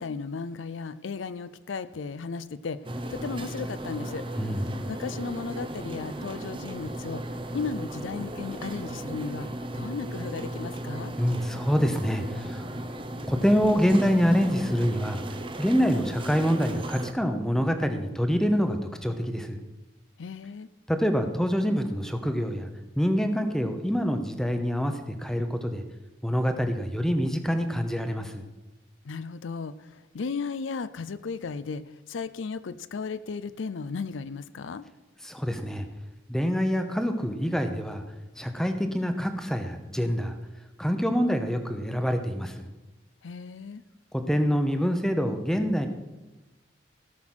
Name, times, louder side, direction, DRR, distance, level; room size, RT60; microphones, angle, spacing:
voice 1, 0.0-2.8 3.1-4.2 4.9-7.2 7.5-9.5 9.7-11.1 20.2-20.7 29.1-31.8 32.1-34.9 43.2-43.8, left 4 dB, 75° left, 14 dB, 0.5 m, -35 dB
sound 1, 2.8-17.1, right 1 dB, 25° right, 0.7 m, -36 dB
voice 2, 11.2-12.7 13.3-15.2 15.6-19.6 20.9-22.7 23.0-25.8 26.2-28.4 35.2-35.9 36.3-38.0 38.4-40.4 40.8-42.7 44.3-45.9, equal, 5° left, 6 dB, 0.8 m, -26 dB
16.5 x 6.0 x 6.2 m, 1.1 s
head